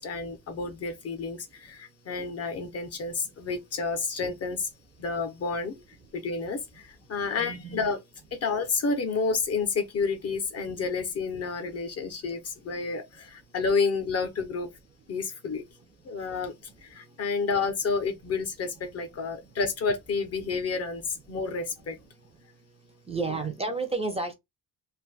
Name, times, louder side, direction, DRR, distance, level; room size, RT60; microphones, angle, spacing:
voice 1, 0.0-4.7 5.0-5.8 6.1-8.0 8.3-14.7 15.1-15.6 16.0-16.5 16.8-22.0 23.3-23.4, left 4 dB, 40° left, 0.5 m, -30 dB
voice 2, 7.4-7.8 23.1-24.3, right 3 dB, 15° right, 0.4 m, -31 dB
2.5 x 2.3 x 3.8 m
cardioid pair, 160°, 40 cm